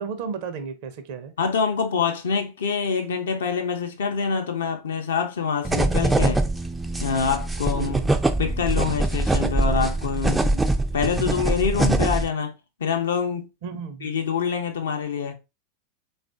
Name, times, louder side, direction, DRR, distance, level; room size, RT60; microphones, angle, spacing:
voice 1, 0.0-1.3 7.8-8.3 13.6-14.1, right 5 dB, 45° right, 0.6 m, -33 dB
voice 2, 1.4-6.5 7.0-8.0 8.4-12.5 12.8-13.5 14.0-15.3, left 6 dB, 65° left, 0.6 m, -25 dB
sound 1, 5.6-12.3, right 2 dB, 5° right, 0.4 m, -23 dB
3.5 x 2.4 x 2.4 m
figure-of-eight pair, 90°, 0 cm